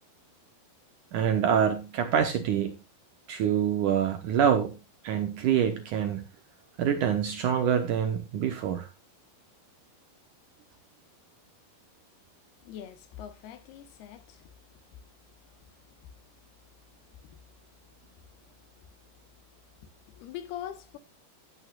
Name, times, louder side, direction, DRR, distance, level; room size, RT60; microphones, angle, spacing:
voice 1, 1.1-2.8 3.3-4.8 5.0-6.2 6.8-8.9, right 8 dB, 70° right, 2.1 m, -26 dB
voice 2, 12.6-14.5 20.1-21.0, left 10 dB, 80° left, 3.0 m, -42 dB
15.5 x 8.7 x 2.4 m
omnidirectional pair, 4.7 m